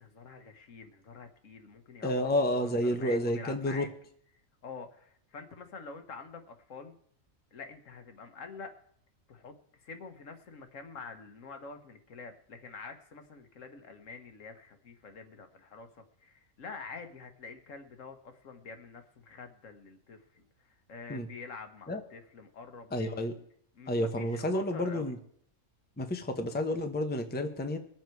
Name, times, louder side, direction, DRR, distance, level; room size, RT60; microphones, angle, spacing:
voice 1, 0.0-3.9 4.6-7.0 7.5-8.7 9.3-23.3 23.8-25.1, left 4 dB, 65° left, 7 dB, 1.5 m, -47 dB
voice 2, 2.0-3.9 21.1-21.3 21.9-22.0 22.9-23.3 23.9-25.2 26.0-27.8, left 1 dB, 10° left, 6 dB, 0.8 m, -30 dB
22.0 x 7.6 x 4.6 m, 0.65 s
omnidirectional pair, 1.4 m